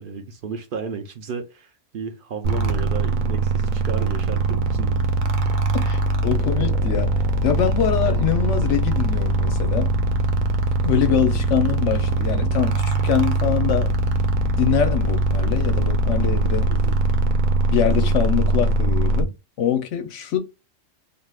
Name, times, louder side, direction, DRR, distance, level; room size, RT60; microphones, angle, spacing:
voice 1, 0.0-5.0 16.7-17.0, right 5 dB, 60° right, 0.6 m, -33 dB
sound 1, 2.4-19.2, right 2 dB, 90° right, 1.0 m, -21 dB
voice 2, 5.7-9.9 10.8-13.9 14.4-16.7 17.7-19.3 19.6-20.4, left 9 dB, 70° left, 0.9 m, -24 dB
2.6 x 2.3 x 3.3 m
omnidirectional pair, 1.4 m